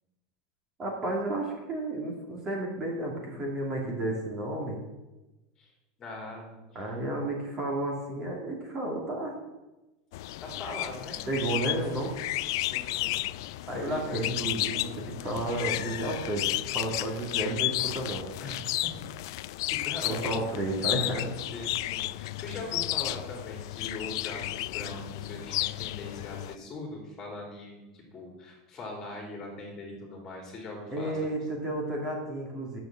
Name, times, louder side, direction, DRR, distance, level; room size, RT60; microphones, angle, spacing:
voice 1, 0.8-4.8 6.7-9.3 11.3-12.1 13.7-18.3 20.0-21.3 30.9-32.8, right 1 dB, 20° right, -1 dB, 2.6 m, -32 dB
voice 2, 6.0-6.8 10.4-11.2 12.6-13.2 13.7-14.3 18.4-20.4 21.4-31.3, left 2 dB, 20° left, 1 dB, 3.2 m, -41 dB
sound 1, 10.1-26.6, left 17 dB, 65° left, 0.4 m, -33 dB
10.5 x 7.0 x 7.6 m, 1.0 s
supercardioid pair, 170°, 2 cm